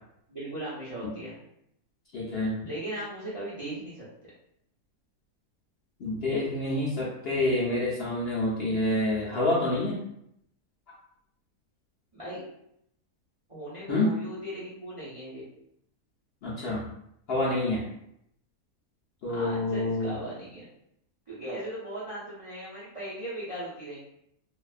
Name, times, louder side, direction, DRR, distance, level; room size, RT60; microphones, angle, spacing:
voice 1, 0.3-1.4 2.6-4.1 12.1-12.4 13.5-15.4 19.3-20.6 21.3-24.0, right 1 dB, 45° right, -9 dB, 0.4 m, -38 dB
voice 2, 2.1-2.6 6.0-10.0 13.9-14.2 16.4-16.8 17.3-17.8 19.2-20.1, left 2 dB, 75° left, -6 dB, 0.5 m, -27 dB
2.5 x 2.2 x 2.4 m, 0.76 s
omnidirectional pair, 1.7 m